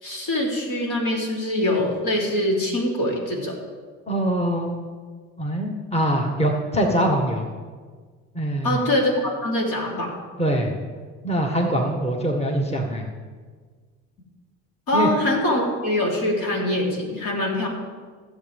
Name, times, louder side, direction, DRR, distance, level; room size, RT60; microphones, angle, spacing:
voice 1, 0.0-3.5 8.6-10.2 14.9-17.7, left 1 dB, 65° left, -3 dB, 3.8 m, -23 dB
voice 2, 4.1-4.9 5.4-7.4 8.4-8.8 10.4-10.7 11.2-13.0 14.9-15.1, right 1 dB, 20° left, 0 dB, 1.7 m, -23 dB
16.5 x 7.7 x 3.6 m, 1.5 s
supercardioid pair, 70°, 34 cm